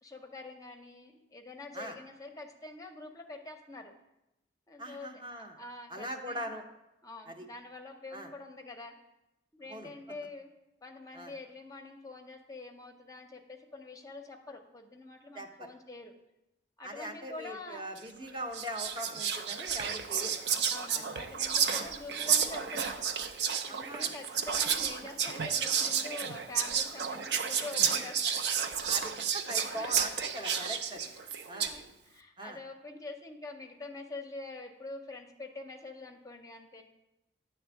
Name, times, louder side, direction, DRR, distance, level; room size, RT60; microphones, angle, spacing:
voice 1, 0.0-3.9 4.7-6.5 7.0-8.9 9.5-10.5 10.8-16.1 16.8-17.9 20.7-23.0 23.6-28.4 29.6-30.7 31.5-36.8, left 2 dB, 20° left, 4 dB, 0.6 m, -46 dB
voice 2, 4.8-5.6 5.9-6.6 7.3-7.5 8.1-8.3 9.7-9.9 11.1-11.3 15.3-15.7 16.8-20.4 20.9-21.0 21.7-21.9 23.7-24.1 28.9-31.0 31.5-31.8 32.4-32.6, right 1 dB, 25° right, 4 dB, 0.7 m, -41 dB
Whispering, 18.0-18.2 18.5-31.8, right 7 dB, 65° right, 0.5 m, -31 dB
9.8 x 3.4 x 7.0 m, 0.92 s
head